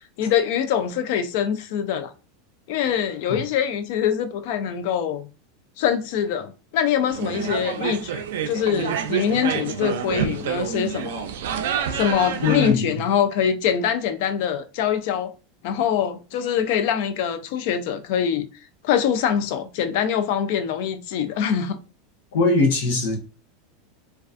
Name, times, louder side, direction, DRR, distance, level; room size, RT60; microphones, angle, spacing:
voice 1, 0.2-2.1 2.7-5.3 5.8-11.3 11.9-15.3 15.6-18.4 18.8-21.8, left 8 dB, 60° left, 0.4 m, -24 dB
sound 1, 7.1-12.7, right 8 dB, 80° right, 0.3 m, -28 dB
voice 2, 12.4-12.9 22.3-23.2, left 3 dB, 90° left, 0.8 m, -21 dB
2.4 x 2.3 x 2.4 m
supercardioid pair, 150°, 0 cm